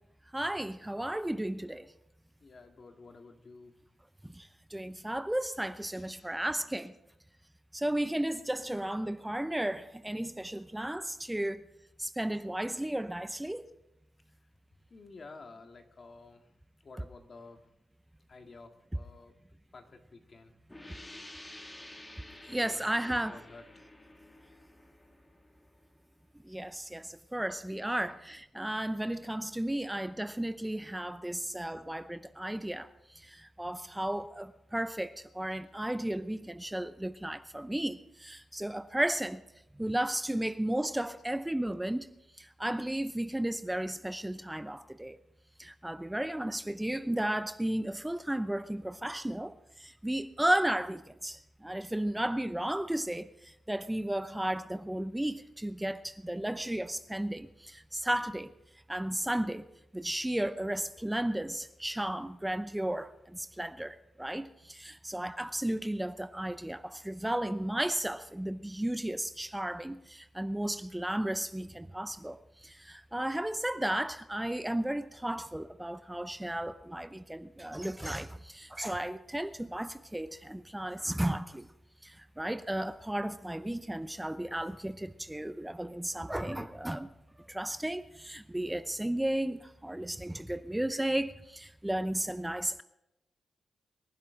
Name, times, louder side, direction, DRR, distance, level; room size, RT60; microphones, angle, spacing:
voice 1, 0.3-1.9 4.2-6.9 7.7-11.6 12.0-13.7 22.5-23.4 26.4-39.4 39.8-42.1 42.4-45.2 45.6-58.5 58.9-59.7 59.9-81.7 82.0-87.1 87.5-92.8, right 1 dB, 10° right, 0.7 m, -34 dB
voice 2, 2.4-3.8 5.5-6.5 12.2-12.4 14.9-16.5 16.8-17.7 18.3-19.3 19.7-20.5 22.5-23.7 27.3-27.5 27.8-28.2 28.7-28.8 38.6-38.8 40.4-40.5 41.1-41.8, left 3 dB, 50° left, 2.0 m, -53 dB
sound 1, 20.7-26.2, left 1 dB, 20° left, 2.3 m, -51 dB
25.0 x 11.5 x 3.9 m
cardioid pair, 55°, 0 cm